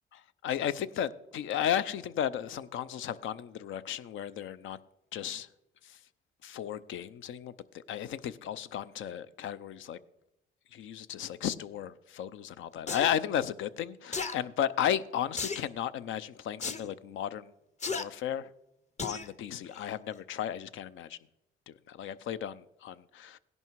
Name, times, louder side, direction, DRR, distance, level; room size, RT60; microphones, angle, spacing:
voice 1, 0.4-4.8 5.1-5.5 5.8-6.0 6.4-10.0 10.7-17.5 17.9-18.5 19.0-21.2 21.7-23.4, left 10 dB, 75° left, 0.6 m, -34 dB
sound 1, 12.9-13.1 14.1-14.4 15.4-15.7 16.6-16.8 17.8-18.0 19.0-19.3 19.7-19.8, left 4 dB, 35° left, 0.9 m, -34 dB
16.5 x 11.0 x 4.7 m
cardioid pair, 90°, 20 cm